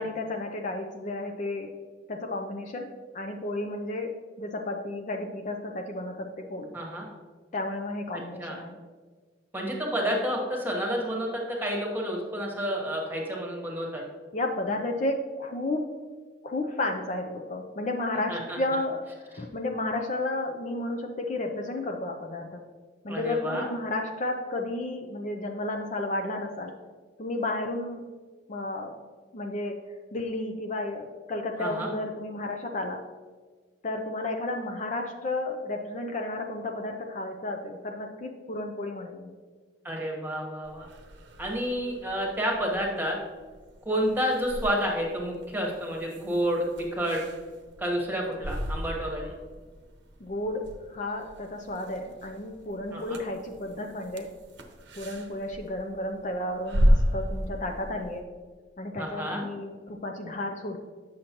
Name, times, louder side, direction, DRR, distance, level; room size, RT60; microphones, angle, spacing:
voice 1, 0.0-1.7 2.1-2.9 3.1-4.1 4.4-6.7 7.5-8.8 14.3-15.9 16.4-19.0 19.3-22.6 23.0-26.7 27.2-28.1 28.5-29.0 29.3-29.8 30.1-33.0 33.8-39.3 49.0-49.1 50.2-54.3 55.0-58.2 58.8-60.8, left 2 dB, 40° left, 3 dB, 0.5 m, -32 dB
voice 2, 6.7-7.1 8.1-8.6 9.5-14.0 18.3-18.6 23.1-23.7 31.6-31.9 39.8-40.9 41.4-43.2 43.8-46.7 46.9-47.2 47.8-49.3 52.9-53.2 59.0-59.4, equal, 10° right, -1 dB, 1.3 m, -30 dB
sound 1, 40.6-58.2, equal, 75° right, 0.8 m, -33 dB
8.6 x 6.4 x 2.9 m, 1.5 s
head